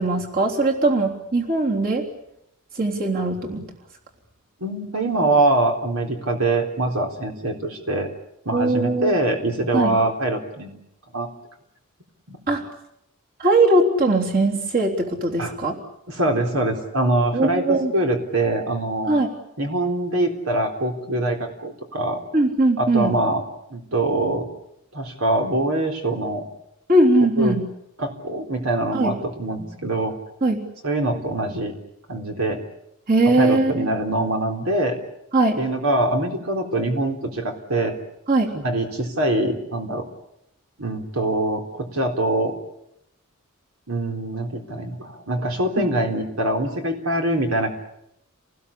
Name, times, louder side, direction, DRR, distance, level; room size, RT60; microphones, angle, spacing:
voice 1, 0.0-2.1 2.8-3.7 8.5-9.2 9.7-10.0 12.5-12.6 13.4-15.8 17.3-17.9 19.1-19.3 22.3-23.1 26.9-27.6 28.9-29.1 30.4-30.6 33.1-33.9 35.3-35.6 38.3-38.5 45.8-45.9, right 2 dB, 40° right, 0 dB, 3.6 m, -20 dB
voice 2, 4.6-8.1 8.5-10.7 11.1-11.3 12.3-12.4 15.4-15.5 16.1-19.2 19.6-22.2 22.8-23.4 23.7-24.5 24.9-26.4 27.4-27.5 28.0-30.1 30.8-31.7 32.1-32.6 33.2-35.0 35.6-37.9 38.5-40.1 40.8-42.5 43.9-47.7, right 1 dB, 75° right, 3 dB, 3.9 m, -23 dB
29.0 x 20.0 x 8.5 m, 0.79 s
head